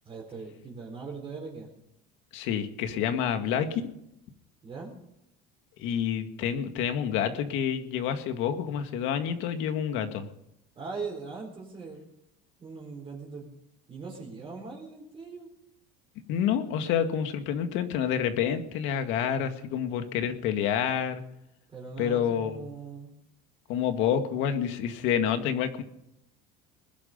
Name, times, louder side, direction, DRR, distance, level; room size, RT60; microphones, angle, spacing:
voice 1, 0.0-1.7 2.9-3.1 4.6-5.0 10.7-12.0 12.6-13.5 13.9-15.5 21.7-23.1, right 4 dB, 25° right, -2 dB, 4.1 m, -40 dB
voice 2, 2.3-3.8 5.8-10.3 16.3-21.2 22.0-22.6 23.7-25.8, left 8 dB, 70° left, 7 dB, 2.0 m, -28 dB
21.0 x 11.5 x 5.4 m, 0.80 s
cardioid pair, 140°, 20 cm